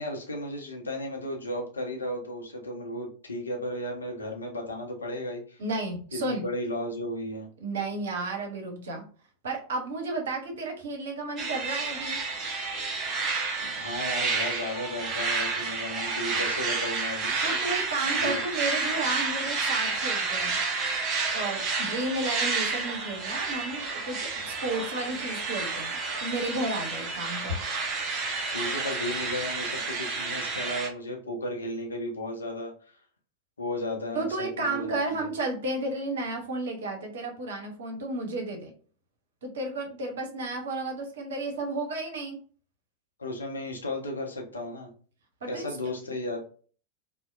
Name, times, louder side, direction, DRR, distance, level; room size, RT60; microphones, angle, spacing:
voice 1, 0.0-5.6 6.1-7.5 13.6-17.4 18.2-18.4 28.5-33.0 33.6-35.3 43.2-44.9 45.4-46.5, left 1 dB, 75° left, 1 dB, 0.6 m, -34 dB
voice 2, 5.6-6.4 7.6-9.0 9.4-12.2 17.4-20.6 21.3-27.6 34.1-38.7 39.4-42.4 45.4-45.7, right 2 dB, 60° right, 2 dB, 0.8 m, -32 dB
sound 1, 11.4-30.9, right 4 dB, 30° right, 0.7 m, -30 dB
2.8 x 2.1 x 2.4 m, 0.42 s
figure-of-eight pair, 90°, 0 cm